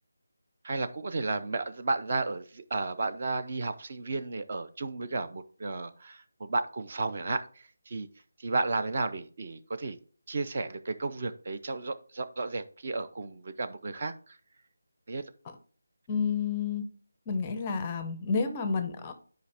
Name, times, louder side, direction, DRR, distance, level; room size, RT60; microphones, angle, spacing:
voice 1, 0.6-8.1 8.4-10.0 10.3-14.1 15.1-15.2, right 3 dB, 30° right, 9 dB, 0.5 m, -33 dB
voice 2, 16.1-16.9 17.3-19.1, left 5 dB, 15° left, 10 dB, 0.5 m, -30 dB
10.5 x 5.0 x 3.4 m, 0.41 s
figure-of-eight pair, 175°, 0 cm